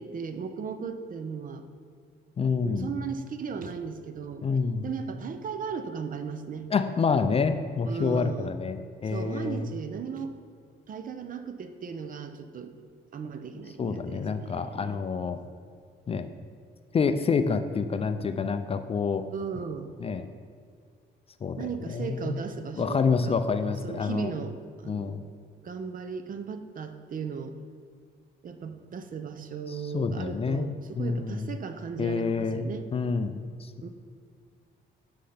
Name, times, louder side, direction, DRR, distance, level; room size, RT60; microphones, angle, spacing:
voice 1, 0.0-1.7 2.6-4.5 4.8-6.7 7.8-8.6 9.0-10.3 10.9-12.7 13.1-15.0 19.3-19.9 21.6-23.4 23.8-24.6 24.8-25.2 25.6-27.6 28.4-32.9 33.8-33.9, right 6 dB, 45° right, 9 dB, 0.5 m, -36 dB
voice 2, 2.4-2.9 4.4-4.9 6.7-8.8 9.0-9.7 13.8-15.4 16.1-16.3 16.9-19.3 20.0-20.2 21.4-22.4 22.8-24.3 24.9-25.2 29.9-30.6 31.0-31.5 32.0-33.4, left 5 dB, 30° left, 9 dB, 0.3 m, -27 dB
7.7 x 5.3 x 3.4 m, 2.1 s
cardioid pair, 90°, 20 cm